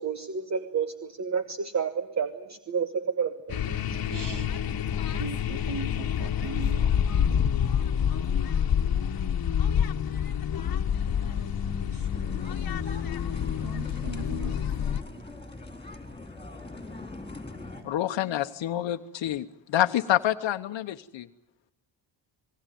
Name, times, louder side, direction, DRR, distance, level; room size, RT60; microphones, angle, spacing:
voice 1, 0.0-4.1, right 6 dB, 35° right, 11 dB, 1.2 m, -31 dB
sound 1, 3.5-15.0, left 8 dB, 50° left, 1.4 m, -27 dB
voice 2, 4.1-4.5 5.2-7.0 7.4-7.5 11.2-12.6 12.8-13.0 13.6-14.6, right 5 dB, 60° right, 6 dB, 4.3 m, -40 dB
sound 2, 12.1-17.8, left 2 dB, 10° left, 4.0 m, -42 dB
voice 3, 17.8-21.3, left 12 dB, 70° left, 7 dB, 1.0 m, -27 dB
28.0 x 20.0 x 9.2 m, 0.79 s
cardioid pair, 140°, 46 cm